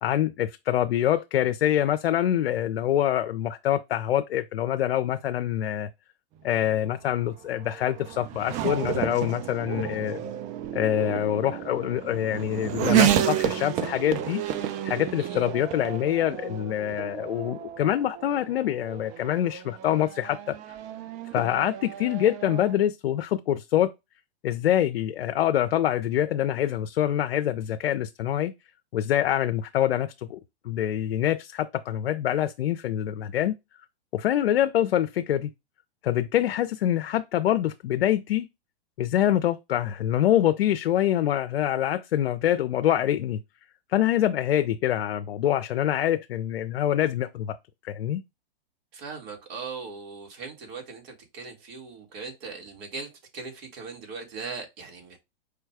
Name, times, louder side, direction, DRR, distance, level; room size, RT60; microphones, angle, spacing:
voice 1, 0.0-5.9 6.4-10.2 10.7-14.4 14.8-20.6 21.3-23.9 24.4-28.5 28.9-30.4 30.6-33.5 34.1-35.5 36.0-38.5 39.0-43.4 43.9-47.6 47.8-48.2, left 11 dB, 80° left, 0.5 m, -25 dB
Race car auto racing / Accelerating revving vroom, 6.5-22.8, right 11 dB, 25° right, 0.4 m, -31 dB
voice 2, 48.9-55.2, right 4 dB, 45° right, 1.9 m, -39 dB
4.9 x 2.3 x 4.6 m
hypercardioid pair, 125°, 30 cm